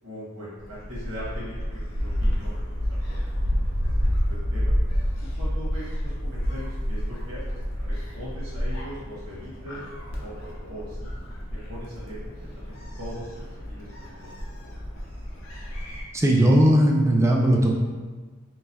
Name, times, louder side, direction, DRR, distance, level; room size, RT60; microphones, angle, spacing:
voice 1, 0.0-2.6 3.1-3.4 3.7-4.0 4.3-4.7 5.4-9.8 10.2-11.1 11.7-14.7, equal, 75° right, -8 dB, 1.3 m, -41 dB
Gull seagull, 0.6-16.0, equal, 70° left, 0.7 m, -29 dB
voice 2, 16.1-17.7, right 1 dB, 15° right, -1 dB, 0.3 m, -18 dB
3.4 x 3.0 x 2.8 m, 1.4 s
head